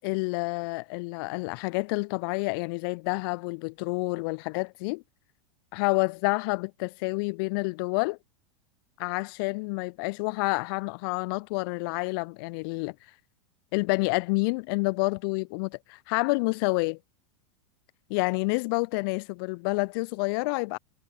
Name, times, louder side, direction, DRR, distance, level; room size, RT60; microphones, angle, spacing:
voice 1, 0.0-5.0 5.7-8.2 9.0-12.9 13.7-17.0 18.1-20.8, left 29 dB, 45° left, 0.5 m, -28 dB
supercardioid pair, 150°, 16 cm